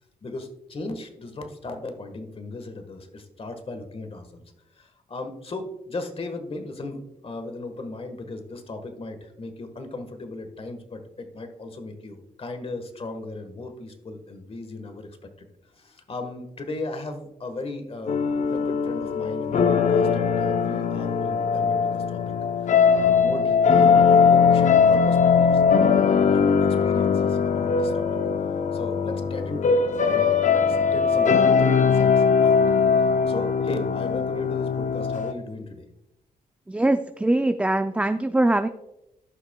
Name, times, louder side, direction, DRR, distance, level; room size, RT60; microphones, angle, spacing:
voice 1, 0.2-4.4 4.8-15.1 15.4-15.5 15.7-22.3 22.6-25.6 26.0-28.0 28.7-32.6 32.9-35.8, left 2 dB, 40° left, 7 dB, 1.3 m, -37 dB
sound 1, 18.1-35.3, left 6 dB, 55° left, 0.6 m, -20 dB
voice 2, 36.7-38.7, right 1 dB, 10° right, 8 dB, 0.3 m, -22 dB
14.5 x 5.8 x 2.2 m, 0.91 s
cardioid pair, 90°, 15 cm